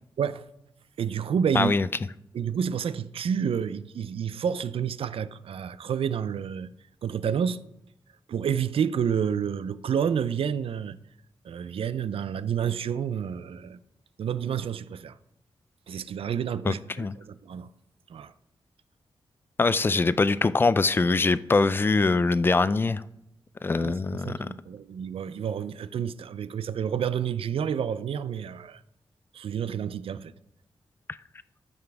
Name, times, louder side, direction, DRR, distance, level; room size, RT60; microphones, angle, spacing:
voice 1, 1.0-1.7 2.3-6.7 7.0-7.6 8.3-11.0 11.4-13.8 14.2-15.2 15.9-17.7 18.1-18.3 23.8-28.8 29.3-30.3, right 8 dB, 85° right, 0.5 m, -29 dB
voice 2, 1.6-1.9 16.7-17.1 19.6-23.0 23.6-24.5, left 3 dB, 25° left, 0.3 m, -23 dB
13.0 x 6.9 x 3.5 m
wide cardioid pair, 140°, 9 cm